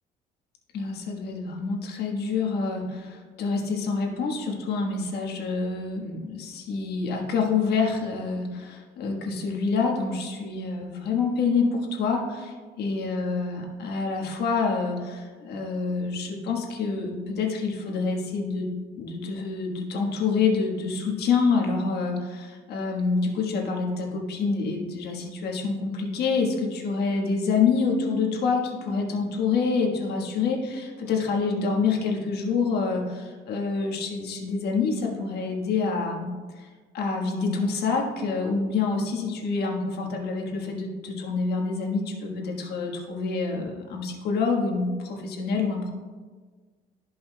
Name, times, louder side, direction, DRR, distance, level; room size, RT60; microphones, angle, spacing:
voice 1, 0.7-36.3 36.6-36.7 36.9-45.9, left 4 dB, 70° left, 1 dB, 1.4 m, -27 dB
13.0 x 5.4 x 2.2 m, 1.5 s
cardioid pair, 110°, 17 cm